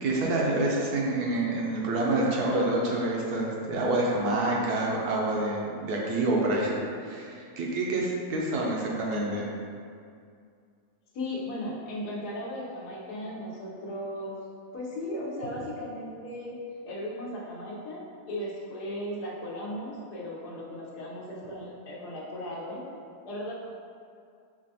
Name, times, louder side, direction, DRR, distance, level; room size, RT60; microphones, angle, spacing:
voice 1, 0.0-9.5, right 2 dB, 80° right, -3 dB, 1.1 m, -27 dB
voice 2, 11.1-14.3 14.7-22.8 23.2-23.5, left 1 dB, 80° left, -4 dB, 1.2 m, -36 dB
4.8 x 2.2 x 2.7 m, 2.3 s
omnidirectional pair, 1.7 m